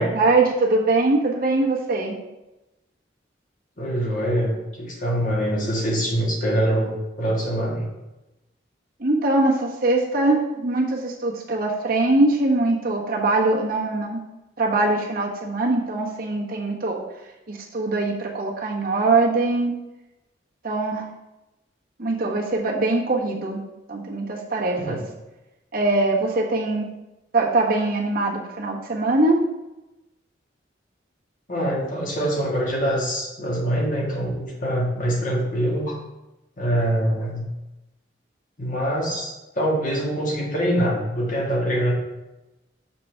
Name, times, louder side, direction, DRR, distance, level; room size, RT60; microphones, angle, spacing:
voice 1, 0.0-2.2 9.0-14.2 14.6-17.0 17.5-19.7 20.6-21.1 22.0-23.6 23.9-25.0 25.7-26.9 27.3-29.4, right 2 dB, 55° right, -2 dB, 1.3 m, -22 dB
voice 2, 3.8-7.9 24.9-25.0 31.5-35.9 36.6-37.5 38.6-41.9, equal, 45° left, -3 dB, 1.8 m, -24 dB
6.9 x 5.8 x 3.4 m, 0.99 s
head